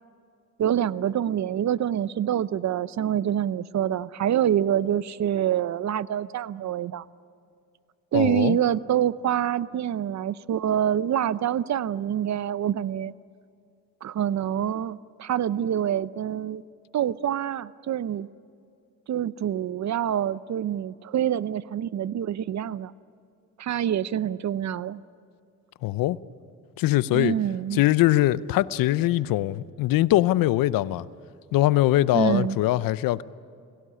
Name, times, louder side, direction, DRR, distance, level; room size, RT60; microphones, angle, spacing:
voice 1, 0.6-7.0 8.1-13.1 14.0-16.6 16.9-18.3 19.1-22.9 23.6-25.0 27.1-27.8 32.1-32.6, right 10 dB, 55° right, 17 dB, 0.8 m, -26 dB
voice 2, 8.1-8.6 25.8-26.2 26.8-27.4 27.7-31.1 31.5-33.2, left 15 dB, 85° left, 18 dB, 0.7 m, -22 dB
29.5 x 18.0 x 10.0 m, 2.4 s
cardioid pair, 75°, 33 cm